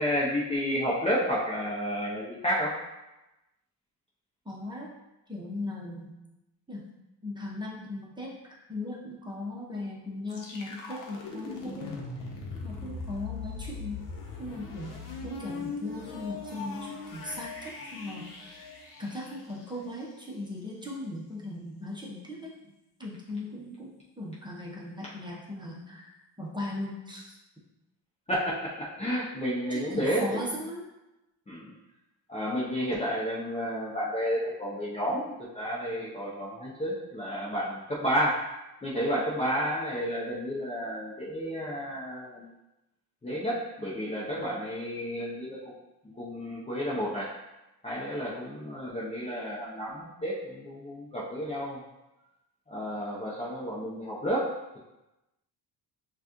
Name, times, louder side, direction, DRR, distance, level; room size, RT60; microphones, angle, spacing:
voice 1, 0.0-2.8 28.3-30.4 31.5-31.7 32.3-38.4 38.8-42.5 43.2-45.7 46.1-47.4 47.8-51.8 52.7-54.8, equal, 15° left, -6 dB, 0.7 m, -31 dB
voice 2, 4.4-4.9 5.3-6.1 6.7-6.9 7.2-8.3 8.7-12.0 12.6-14.0 14.4-18.4 19.0-22.5 23.0-26.1 26.4-27.4 29.7-30.8, left 2 dB, 10° right, -4 dB, 0.9 m, -38 dB
sound 1, 10.3-20.1, left 4 dB, 50° left, 1.0 m, -40 dB
5.9 x 2.4 x 3.0 m, 0.97 s
cardioid pair, 110°, 41 cm